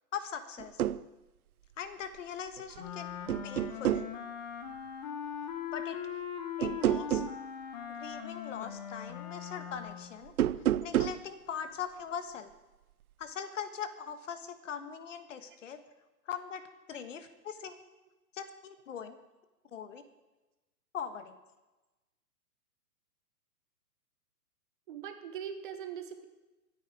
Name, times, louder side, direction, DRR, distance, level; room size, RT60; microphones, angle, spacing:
voice 1, 0.1-0.8 1.8-3.1 3.4-4.1 5.7-6.0 6.6-7.4 8.0-10.3 10.8-12.5 13.2-15.8 16.3-16.6 16.9-17.8 18.3-19.2 19.7-20.0 20.9-21.4, left 7 dB, 50° left, 10 dB, 1.4 m, -41 dB
sound 1, 0.6-1.0 2.6-2.9 3.3-4.1 6.6-7.4 10.3-11.2, right 11 dB, 60° right, 0.6 m, -29 dB
Wind instrument woodwind instrument, 2.8-10.2, left 8 dB, 25° left, 1.1 m, -40 dB
voice 2, 24.9-26.2, right 8 dB, 30° right, 8 dB, 1.1 m, -42 dB
23.5 x 9.4 x 4.8 m, 1.1 s
hypercardioid pair, 165°, 49 cm